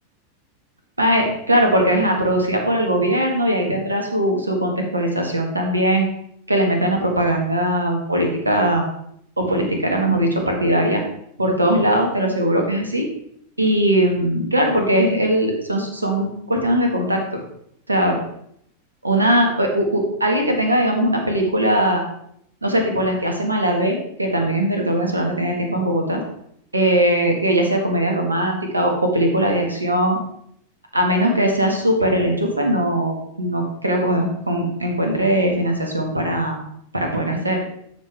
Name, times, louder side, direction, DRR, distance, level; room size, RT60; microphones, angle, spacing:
voice 1, 1.0-6.0 6.5-8.8 9.4-11.0 11.4-13.1 13.6-17.4 17.9-18.2 19.0-22.0 22.6-26.2 26.7-30.2 30.9-36.6 36.9-37.6, right 1 dB, 80° right, 2 dB, 1.8 m, -20 dB
12.5 x 5.5 x 3.5 m, 0.71 s
figure-of-eight pair, 90°, 0 cm